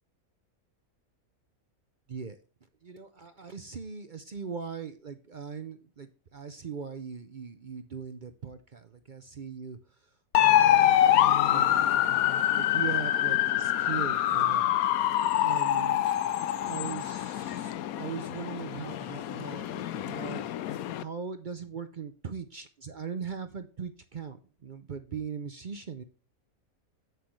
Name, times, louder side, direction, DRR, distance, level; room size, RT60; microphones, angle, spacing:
voice 1, 2.8-9.8 10.4-11.0 11.4-11.7 12.5-14.8 15.4-16.1 16.7-20.5 21.0-26.0, right 6 dB, 45° right, 10 dB, 0.6 m, -40 dB
sound 1, 10.3-21.0, left 12 dB, 75° left, 1.1 m, -25 dB
8.4 x 7.7 x 3.2 m, 0.35 s
omnidirectional pair, 1.5 m